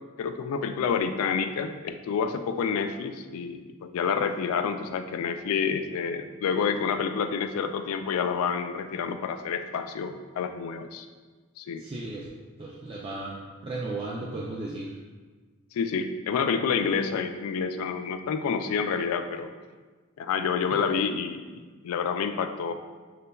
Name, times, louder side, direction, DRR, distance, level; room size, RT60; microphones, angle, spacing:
voice 1, 0.2-11.1 11.6-11.8 15.7-19.5 20.2-22.7, left 6 dB, 90° left, 8 dB, 0.3 m, -28 dB
voice 2, 11.8-12.3 12.6-15.0, right 2 dB, 25° right, -4 dB, 0.3 m, -35 dB
6.4 x 2.2 x 2.2 m, 1.4 s
head